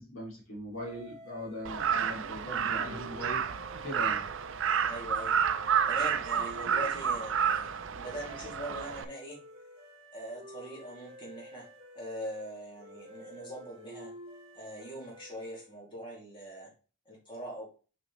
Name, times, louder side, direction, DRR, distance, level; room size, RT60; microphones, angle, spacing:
voice 1, 0.0-3.6 3.8-4.2, left 1 dB, 65° left, -4 dB, 2.6 m, -40 dB
little tune, 0.7-15.8, equal, 25° right, 2.4 m, -51 dB
Crow, 1.6-9.0, right 7 dB, 60° right, 0.5 m, -30 dB
voice 2, 4.8-5.3 5.8-9.4 10.1-11.7 11.9-14.1 14.5-16.7 17.1-17.7, equal, 20° left, -4 dB, 2.6 m, -42 dB
6.1 x 4.9 x 3.1 m, 0.35 s
head